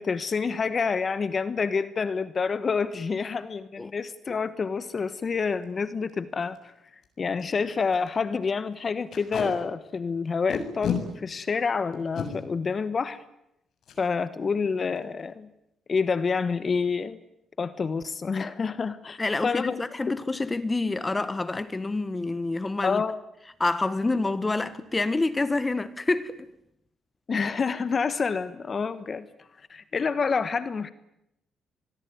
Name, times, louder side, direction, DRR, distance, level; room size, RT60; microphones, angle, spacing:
voice 1, 0.0-6.7 7.2-13.2 14.0-15.5 15.9-17.2 17.6-19.8 22.8-23.2 27.3-29.3 29.7-30.9, left 5 dB, 40° left, 1.3 m, -28 dB
Packing tape duct tape, 5.5-5.6 6.1-6.2 6.4-6.6 7.0-7.1 7.4-7.6 7.9-8.1 9.1-9.5 10.5-11.0 11.9-12.3 13.8-14.0 14.4-14.5 14.8-15.2, left 7 dB, 65° left, 7.3 m, -31 dB
voice 2, 19.2-23.0 23.6-26.5, left 2 dB, 20° left, 1.4 m, -27 dB
26.5 x 21.0 x 9.4 m
cardioid pair, 90°, 0 cm